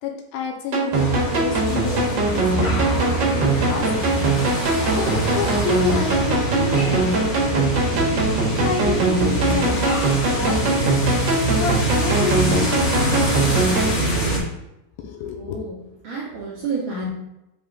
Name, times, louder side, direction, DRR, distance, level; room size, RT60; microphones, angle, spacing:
voice 1, 0.0-2.4 2.9-4.2 5.0-8.0 8.6-11.0 11.6-14.3 15.0-15.6, left 6 dB, 80° left, 2 dB, 2.4 m, -30 dB
sound 1, 0.7-14.0, right 3 dB, 90° right, 1.0 m, -22 dB
sound 2, 0.9-14.4, right 1 dB, 45° left, 2.4 m, -24 dB
voice 2, 15.4-17.1, right 3 dB, 75° right, -5 dB, 1.8 m, -30 dB
7.9 x 3.5 x 3.8 m, 0.91 s
omnidirectional pair, 4.6 m